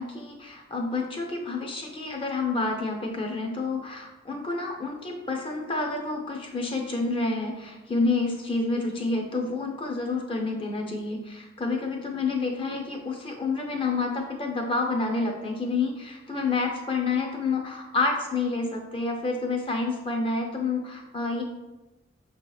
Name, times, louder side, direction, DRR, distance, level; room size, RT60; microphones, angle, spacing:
voice 1, 0.0-21.4, left 3 dB, 25° left, 2 dB, 0.5 m, -29 dB
5.5 x 2.8 x 2.3 m, 1.1 s
head